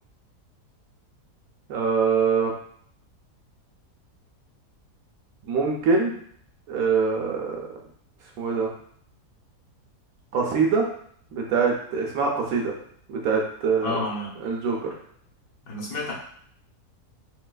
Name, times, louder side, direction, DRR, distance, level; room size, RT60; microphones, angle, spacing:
voice 1, 1.7-2.5 5.4-6.1 6.7-7.6 8.4-8.7 10.3-10.9 11.3-12.7 13.1-14.0 14.4-14.9, right 5 dB, 70° right, 0 dB, 1.0 m, -23 dB
voice 2, 13.8-14.3 15.7-16.1, left 2 dB, 80° left, -4 dB, 1.4 m, -30 dB
3.2 x 3.1 x 2.2 m, 0.63 s
omnidirectional pair, 1.7 m